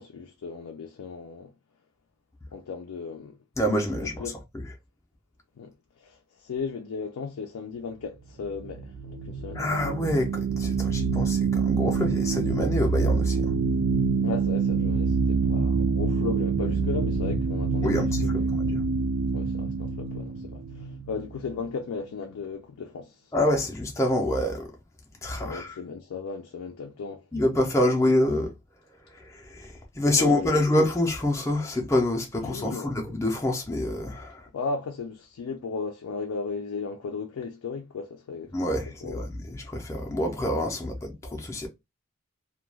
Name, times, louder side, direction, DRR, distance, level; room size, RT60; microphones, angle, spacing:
voice 1, 0.0-1.5 2.5-3.4 4.0-4.4 5.6-9.8 14.2-18.0 18.2-18.5 19.3-23.3 25.4-27.3 30.1-30.7 32.4-33.0 34.5-38.6 38.9-39.3, left 5 dB, 80° left, 0.4 m, -36 dB
voice 2, 3.6-4.2 9.6-13.5 17.8-18.8 23.3-24.7 25.2-25.7 27.3-28.5 29.1-34.5 38.5-41.7, left 1 dB, 15° left, 0.4 m, -26 dB
sound 1, 8.5-21.8, right 4 dB, 70° right, 0.4 m, -26 dB
2.2 x 2.2 x 3.1 m
head